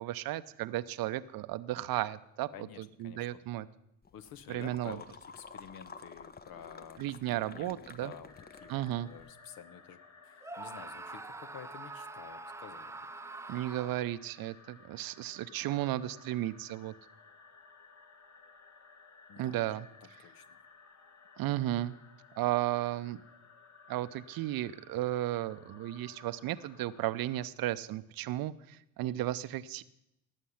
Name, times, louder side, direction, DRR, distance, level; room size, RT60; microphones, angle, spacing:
voice 1, 0.0-3.7 4.5-5.0 7.0-8.1 8.7-9.1 13.5-16.9 19.4-19.9 21.4-21.9 22.4-23.2 23.9-29.8, right 14 dB, 55° right, 15 dB, 0.7 m, -34 dB
voice 2, 2.5-3.4 4.1-8.3 8.6-13.0 19.3-19.6 20.2-20.6, left 8 dB, 55° left, 13 dB, 1.0 m, -51 dB
sound 1, 4.0-9.3, left 5 dB, 25° left, 0.7 m, -51 dB
sound 2, 8.3-27.5, left 4 dB, 40° left, 1.6 m, -58 dB
Screaming, 10.4-14.2, right 3 dB, 5° right, 0.5 m, -45 dB
18.5 x 7.3 x 5.7 m, 0.82 s
figure-of-eight pair, 45°, 42 cm